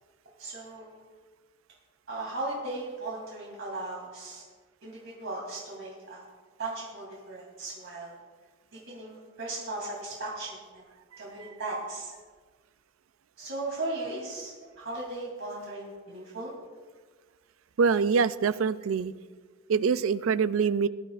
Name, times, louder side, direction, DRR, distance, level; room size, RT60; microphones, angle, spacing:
voice 1, 0.4-0.9 2.1-4.4 4.8-6.3 6.6-8.2 8.7-10.8 11.2-12.1 13.4-16.5, right 2 dB, 65° right, -4 dB, 3.0 m, -37 dB
voice 2, 17.8-19.1 19.7-20.9, right 5 dB, 80° right, 15 dB, 0.4 m, -24 dB
19.5 x 11.5 x 2.5 m, 1.4 s
head